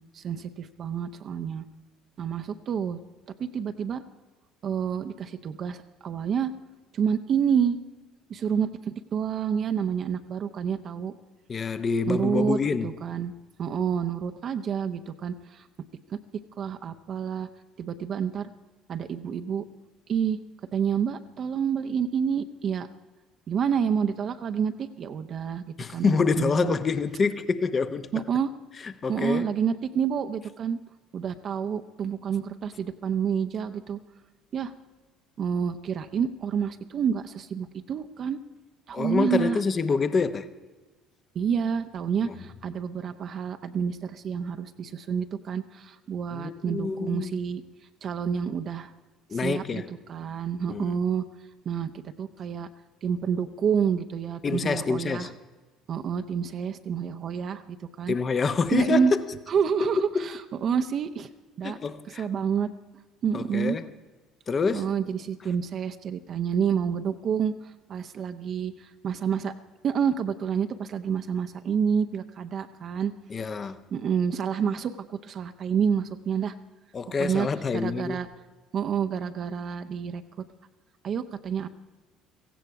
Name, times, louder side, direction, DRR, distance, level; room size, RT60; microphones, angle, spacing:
voice 1, 0.1-1.6 2.2-3.0 3.4-4.0 4.6-6.5 6.9-7.8 8.3-11.1 12.1-13.3 13.6-15.7 16.1-16.2 16.6-17.5 17.8-18.5 18.9-19.7 20.1-20.4 20.7-22.9 23.5-26.8 28.1-28.5 29.1-30.8 31.1-34.0 34.5-34.7 35.4-38.4 38.9-39.6 41.3-47.6 48.0-48.9 49.3-51.2 51.7-51.9 52.2-52.7 53.0-55.3 55.9-58.1 58.7-59.1 59.5-61.3 61.6-61.8 62.2-62.7 63.2-63.8 64.7-67.5 67.9-69.5 69.8-73.1 73.9-76.5 77.2-77.5 77.7-78.3 78.7-80.4 81.0-81.7, right 7 dB, 45° right, 0.7 m, -28 dB
voice 2, 11.5-12.9 25.8-28.1 28.8-29.5 38.9-40.5 42.2-42.4 46.3-47.4 49.3-49.9 50.7-51.0 54.4-55.3 58.1-59.2 59.8-60.4 61.6-62.3 63.3-63.9 64.5-64.9 73.3-73.8 76.9-78.2, left 5 dB, 35° left, 0.9 m, -27 dB
16.5 x 15.5 x 4.8 m
figure-of-eight pair, 55°, 0 cm